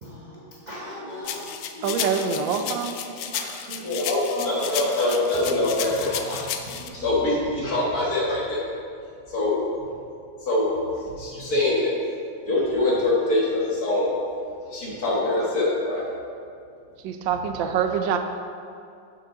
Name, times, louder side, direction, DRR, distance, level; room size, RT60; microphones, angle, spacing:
voice 1, 0.0-2.7 3.0-4.1 4.4-5.2 6.0-6.7, equal, 45° right, -5 dB, 0.5 m, -40 dB
sound 1, 1.3-6.9, left 8 dB, 80° left, 0.8 m, -33 dB
voice 2, 1.8-2.9 17.0-18.2, right 7 dB, 80° right, 6 dB, 1.3 m, -25 dB
voice 3, 3.8-6.4 6.7-8.6 9.3-9.6 10.4-10.7 11.0-11.9 12.5-14.1 14.7-16.1, left 2 dB, 55° left, -6 dB, 2.0 m, -24 dB
7.8 x 6.1 x 3.9 m, 2.4 s
omnidirectional pair, 2.1 m